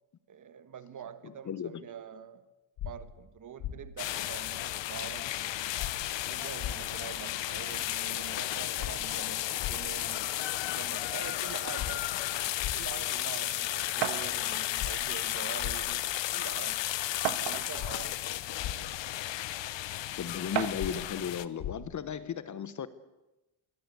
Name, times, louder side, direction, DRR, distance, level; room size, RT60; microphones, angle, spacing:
voice 1, 0.3-2.4 2.8-5.6 6.2-12.0 12.7-16.8 17.4-18.2, right 8 dB, 40° right, 1.5 m, -45 dB
sound 1, 2.8-2.9 3.6-3.7 5.8-5.9 6.6-6.7 8.8-8.9 9.6-9.7 11.8-11.9 12.6-12.7 14.8-14.9 15.6-15.7 17.8-17.9 18.6-18.7 20.8-20.9 21.6-21.7, left 12 dB, 85° left, 2.8 m, -35 dB
sound 2, 4.0-21.5, left 14 dB, 60° left, 1.1 m, -34 dB
sound 3, 14.0-14.3 15.4-15.5 15.9-16.0 17.2-17.9 18.7-18.8 20.5-20.9, right 13 dB, 85° right, 1.6 m, -33 dB
voice 2, 20.2-22.9, left 8 dB, 35° left, 1.1 m, -35 dB
26.5 x 23.0 x 8.1 m
cardioid pair, 175°, 49 cm